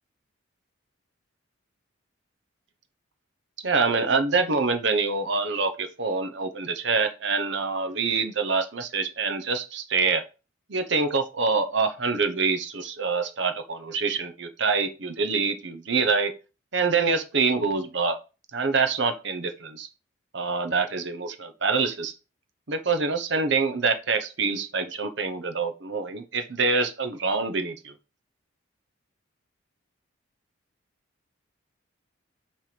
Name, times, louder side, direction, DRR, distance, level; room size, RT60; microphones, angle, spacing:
voice 1, 3.6-10.2 10.7-16.3 16.7-18.2 18.5-19.9 20.3-22.1 22.7-27.9, right 4 dB, 60° right, 7 dB, 0.9 m, -25 dB
6.2 x 3.4 x 5.9 m, 0.31 s
head